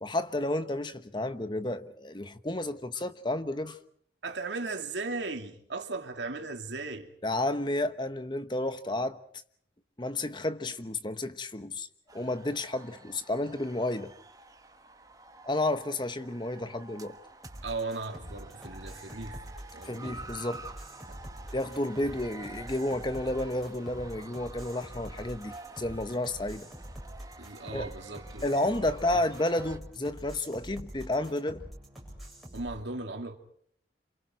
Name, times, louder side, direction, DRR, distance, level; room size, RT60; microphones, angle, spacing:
voice 1, 0.0-3.8 7.2-9.2 10.0-11.9 12.1-14.1 15.4-17.2 19.8-20.6 21.5-26.7 27.7-27.8 28.4-31.6, left 1 dB, 25° left, 1.1 m, -31 dB
voice 2, 4.2-7.1 17.6-19.4 19.7-20.2 21.1-21.2 27.4-28.9 32.5-33.4, right 3 dB, 85° right, 2.9 m, -37 dB
sound 1, 12.1-29.8, right 3 dB, 20° right, 1.4 m, -49 dB
sound 2, 17.4-32.7, equal, ahead, 7.3 m, -45 dB
28.5 x 27.5 x 4.6 m
head